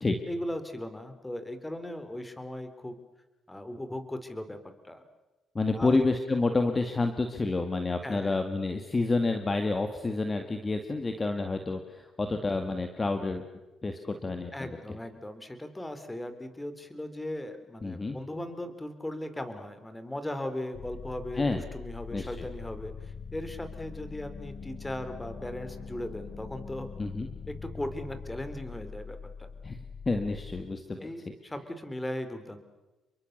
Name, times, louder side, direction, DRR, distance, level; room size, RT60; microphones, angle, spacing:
voice 1, 0.3-3.0 3.5-4.6 4.8-5.0 5.7-6.0 8.0-8.4 14.5-26.9 27.5-29.5 31.0-32.6, left 1 dB, 15° left, 9 dB, 4.0 m, -38 dB
voice 2, 5.5-13.4 13.8-15.0 17.8-18.2 21.4-21.6 22.1-22.3 27.0-27.3 29.6-29.8 30.1-31.1, left 3 dB, 30° left, 6 dB, 2.3 m, -29 dB
sound 1, 20.7-30.6, left 5 dB, 60° left, 4.3 m, -43 dB
29.5 x 23.0 x 6.9 m, 1.1 s
supercardioid pair, 65°, 0 cm